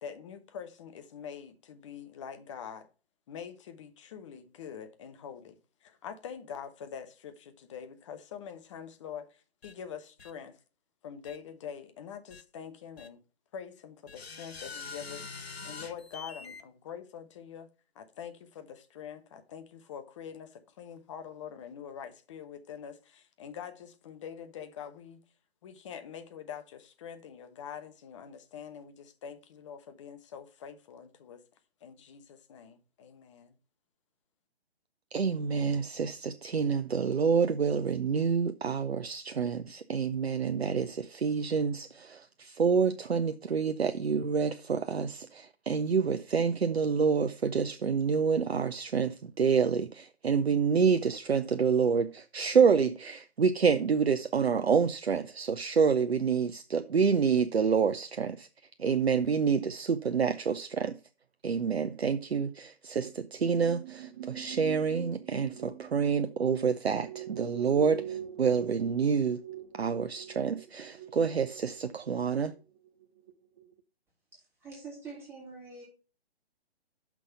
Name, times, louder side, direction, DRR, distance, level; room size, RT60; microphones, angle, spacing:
voice 1, 0.0-2.9 3.3-10.6 11.0-13.2 13.5-17.7 17.9-25.2 25.6-31.4 31.8-33.6, left 8 dB, 30° left, 1.0 m, -45 dB
sound 1, 9.6-9.7 10.2-10.3 11.2-11.4 12.3-12.4 13.0-13.1 14.1-16.6, left 4 dB, 75° left, 0.9 m, -44 dB
voice 2, 35.1-61.0 61.4-69.4 69.7-72.5, right 6 dB, 80° right, 0.6 m, -28 dB
sound 2, 63.0-73.3 73.6-73.8, right 11 dB, 30° right, 0.6 m, -45 dB
voice 3, 74.3-75.8, right 4 dB, 10° right, 3.3 m, -45 dB
6.1 x 5.2 x 6.9 m
figure-of-eight pair, 135°, 31 cm